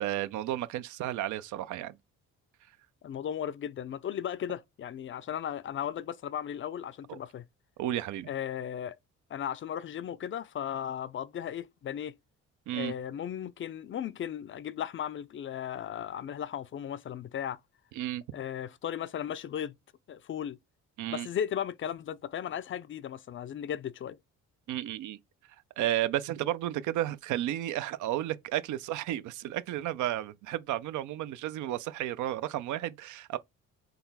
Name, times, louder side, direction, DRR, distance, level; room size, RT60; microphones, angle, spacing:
voice 1, 0.0-2.0 7.1-7.2 7.8-8.3 12.7-12.9 17.9-18.2 21.0-21.3 24.7-25.2 25.8-33.4, right 13 dB, 80° right, 0.5 m, -32 dB
voice 2, 3.0-7.4 8.3-8.9 9.3-12.1 12.7-17.6 18.3-19.7 20.1-20.6 21.1-24.2, left 9 dB, 40° left, 0.4 m, -36 dB
3.9 x 2.3 x 4.0 m
cardioid pair, 90°, 30 cm